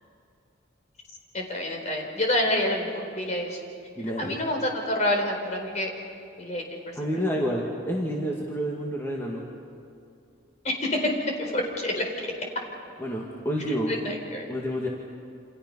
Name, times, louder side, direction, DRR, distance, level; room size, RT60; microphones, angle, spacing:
voice 1, 1.3-3.6 4.2-5.9 6.4-7.1 10.6-12.0 13.9-14.5, left 1 dB, 35° left, 2 dB, 4.3 m, -28 dB
voice 2, 4.0-4.4 7.0-9.4 13.0-13.9 14.5-14.9, equal, 15° left, -3 dB, 2.1 m, -29 dB
29.0 x 27.5 x 5.6 m, 2.6 s
head